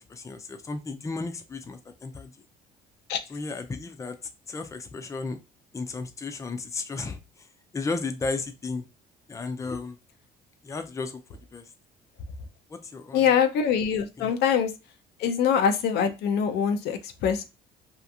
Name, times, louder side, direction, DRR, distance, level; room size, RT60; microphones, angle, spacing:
voice 1, 0.0-2.3 3.3-4.2 4.5-5.4 5.7-7.2 7.7-8.8 9.3-10.0 10.6-11.2 11.5-11.6 12.7-13.3 14.2-14.3, left 3 dB, 20° left, 6 dB, 0.5 m, -34 dB
voice 2, 13.1-14.7 15.2-17.5, left 7 dB, 75° left, 7 dB, 0.5 m, -24 dB
2.8 x 2.5 x 2.3 m, 0.26 s
cardioid pair, 110°, 17 cm